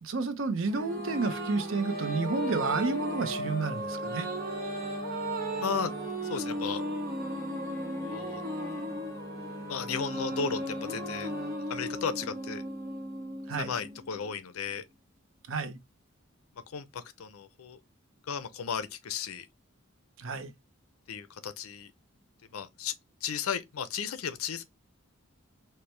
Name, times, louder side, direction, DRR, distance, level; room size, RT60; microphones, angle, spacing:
voice 1, 0.0-4.3 13.5-13.7 15.5-15.8 20.2-20.5, right 4 dB, 65° right, 0.6 m, -31 dB
sound 1, 0.7-12.1, left 3 dB, 15° left, 0.5 m, -46 dB
sound 2, 0.7-14.3, right 1 dB, 45° right, 0.9 m, -36 dB
voice 2, 5.6-5.9 6.2-6.8 8.0-8.4 9.7-11.3 11.7-12.6 13.6-14.8 16.7-17.8 18.2-19.5 21.1-21.9 22.5-22.9 23.2-24.6, left 6 dB, 85° left, 0.5 m, -35 dB
4.4 x 2.1 x 3.2 m
head